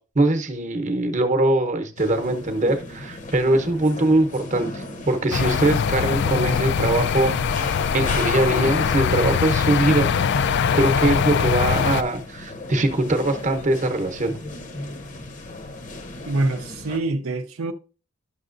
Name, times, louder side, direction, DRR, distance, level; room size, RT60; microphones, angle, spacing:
voice 1, 0.1-10.1 10.7-14.3, right 2 dB, 35° right, 0.9 m, -22 dB
sound 1, 2.0-17.0, left 2 dB, 35° left, 0.8 m, -36 dB
sound 2, 5.3-12.0, left 6 dB, 55° left, 0.3 m, -22 dB
voice 2, 16.3-17.7, right 2 dB, 75° right, 0.6 m, -25 dB
11.0 x 6.6 x 2.5 m
head